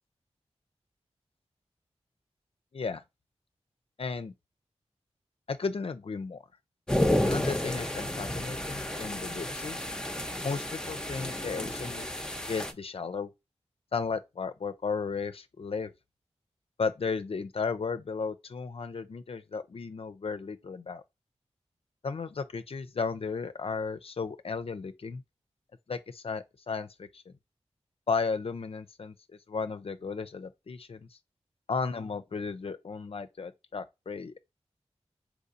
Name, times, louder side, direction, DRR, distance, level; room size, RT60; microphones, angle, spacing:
voice 1, 2.7-3.0 4.0-4.3 5.5-6.4 7.2-9.8 10.4-12.0 12.5-13.3 13.9-15.9 16.8-21.0 22.0-25.2 25.9-27.3 28.1-31.1 31.7-34.4, left 5 dB, 55° left, 0.4 m, -34 dB
sound 1, 6.9-12.7, left 1 dB, 5° left, 0.7 m, -31 dB
4.6 x 2.6 x 2.5 m
cardioid pair, 45°, 12 cm